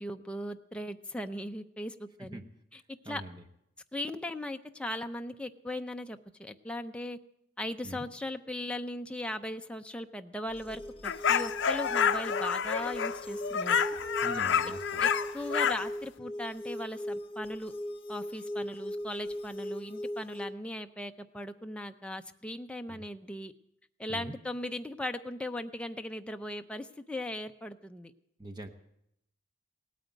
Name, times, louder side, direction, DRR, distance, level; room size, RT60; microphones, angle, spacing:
voice 1, 0.0-2.4 2.7-3.2 3.9-7.2 7.6-13.8 15.0-15.1 15.3-17.7 18.1-23.5 24.0-28.1, left 1 dB, 5° left, 6 dB, 0.5 m, -38 dB
voice 2, 3.0-3.4 7.8-8.1 14.2-15.1 22.9-23.1 24.1-24.4 28.4-28.7, right 1 dB, 20° right, 5 dB, 0.8 m, -43 dB
sound 1, 10.5-20.5, left 1 dB, 25° left, 0.9 m, -39 dB
sound 2, 11.0-15.9, left 7 dB, 60° left, 0.6 m, -29 dB
17.5 x 9.2 x 9.1 m, 0.79 s
head